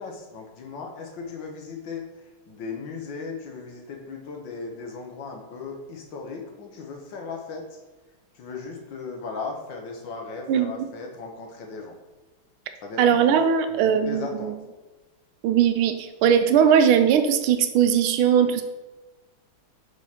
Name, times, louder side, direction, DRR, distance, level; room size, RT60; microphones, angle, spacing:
voice 1, 0.0-7.8 8.3-11.9 12.8-13.4 13.7-14.6, left 4 dB, 65° left, 2 dB, 1.6 m, -37 dB
voice 2, 13.0-14.5 15.4-18.6, right 8 dB, 80° right, 8 dB, 1.4 m, -19 dB
6.2 x 4.8 x 4.3 m, 1.2 s
omnidirectional pair, 2.4 m